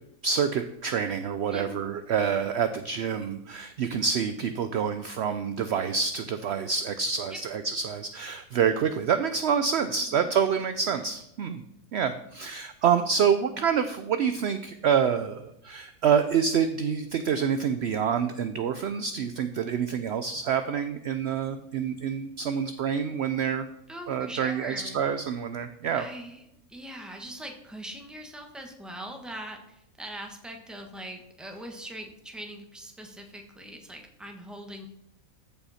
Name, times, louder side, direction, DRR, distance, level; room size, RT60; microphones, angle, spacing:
voice 1, 0.2-11.6 11.9-23.7 24.1-26.0, right 7 dB, 65° right, 10 dB, 0.7 m, -27 dB
voice 2, 9.9-10.3 11.0-11.1 23.9-25.0 25.9-26.4 26.7-34.9, right 1 dB, ahead, 3 dB, 1.2 m, -41 dB
14.0 x 5.6 x 4.2 m, 0.81 s
omnidirectional pair, 1.5 m